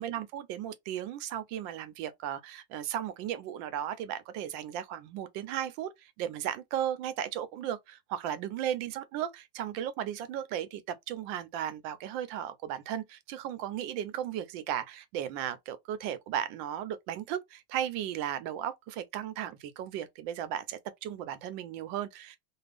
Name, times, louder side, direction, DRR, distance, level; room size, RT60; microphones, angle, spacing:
voice 1, 0.0-22.4, right 10 dB, 90° right, 1.3 m, -35 dB
3.3 x 2.3 x 3.3 m
omnidirectional pair, 2.0 m